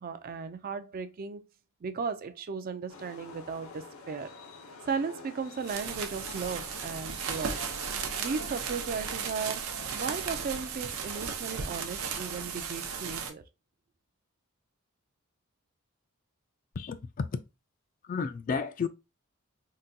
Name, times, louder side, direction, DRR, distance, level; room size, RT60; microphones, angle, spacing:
voice 1, 0.0-1.4 1.8-4.4 4.9-7.7 8.2-13.4, right 5 dB, 45° right, 0.4 m, -36 dB
sound 1, 2.9-8.6, left 3 dB, 80° left, 0.7 m, -48 dB
sound 2, 5.6-13.3, right 6 dB, 85° right, 0.6 m, -35 dB
voice 2, 16.8-17.3 18.0-18.9, left 5 dB, 40° left, 0.3 m, -32 dB
3.8 x 2.2 x 2.6 m
head